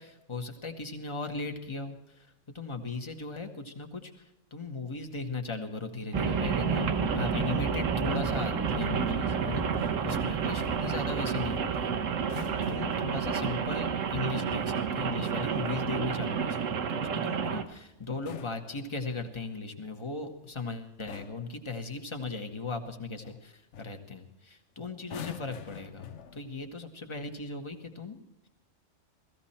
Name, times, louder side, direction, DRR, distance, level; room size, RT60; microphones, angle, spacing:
voice 1, 0.0-2.3 2.5-4.2 4.5-11.9 12.7-16.6 16.9-28.2, left 3 dB, 25° left, 4 dB, 1.4 m, -37 dB
sound 1, 6.1-17.8, right 4 dB, 30° right, 0.4 m, -36 dB
Rain, 6.1-17.6, right 7 dB, 85° right, 1.3 m, -31 dB
sound 2, 12.2-13.2 15.3-15.9 18.0-19.4 20.4-20.7 21.1-21.6 23.2-23.4 23.7-24.0 25.0-26.7 27.6-27.8, left 8 dB, 70° left, 1.1 m, -46 dB
16.5 x 15.5 x 4.3 m, 0.90 s
omnidirectional pair, 1.3 m